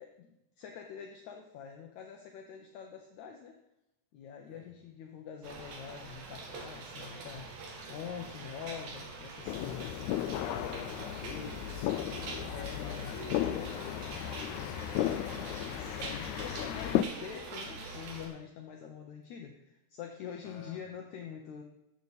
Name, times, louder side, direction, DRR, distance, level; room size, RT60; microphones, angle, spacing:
voice 1, 0.0-3.6 4.1-7.5 7.9-10.2 12.5-13.2 15.7-21.6, left 7 dB, 70° left, 3 dB, 1.9 m, -45 dB
sound 1, 5.4-18.3, right 3 dB, 85° right, 3.5 m, -44 dB
sound 2, 9.5-17.0, left 13 dB, 90° left, 1.6 m, -35 dB
voice 2, 10.4-15.6 20.4-20.8, left 4 dB, 45° left, 1 dB, 1.8 m, -48 dB
14.0 x 7.1 x 4.0 m, 0.91 s
omnidirectional pair, 3.9 m